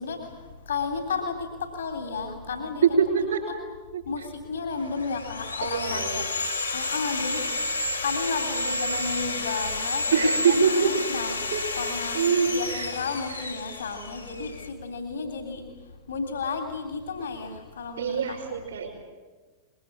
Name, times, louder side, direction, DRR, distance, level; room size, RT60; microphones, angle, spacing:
voice 1, 0.0-3.0 4.0-6.3 6.7-11.4 11.7-12.2 12.5-15.6 16.1-18.6, left 4 dB, 70° left, 4 dB, 3.1 m, -33 dB
voice 2, 2.8-3.6 3.9-4.0 5.6-6.2 10.1-10.9 11.3-11.6 12.1-12.9 18.0-19.0, right 6 dB, 65° right, -4 dB, 5.2 m, -24 dB
Sawing, 4.8-14.7, left 2 dB, 85° left, 3.1 m, -31 dB
24.5 x 22.0 x 8.7 m, 1.3 s
figure-of-eight pair, 90°, 0 cm